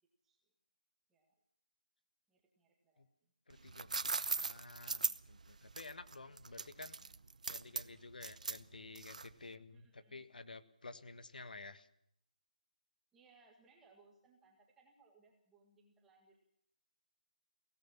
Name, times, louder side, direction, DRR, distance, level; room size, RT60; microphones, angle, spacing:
voice 1, 2.3-3.3 7.0-7.1 9.7-10.2 13.1-16.4, right 4 dB, 5° right, 1 dB, 1.7 m, -68 dB
voice 2, 3.5-7.0 7.5-11.9, left 3 dB, 90° left, 12 dB, 1.7 m, -52 dB
sound 1, 3.5-9.5, right 4 dB, 60° right, 0.7 m, -40 dB
23.5 x 17.0 x 7.3 m, 0.70 s
hypercardioid pair, 180°, 5 cm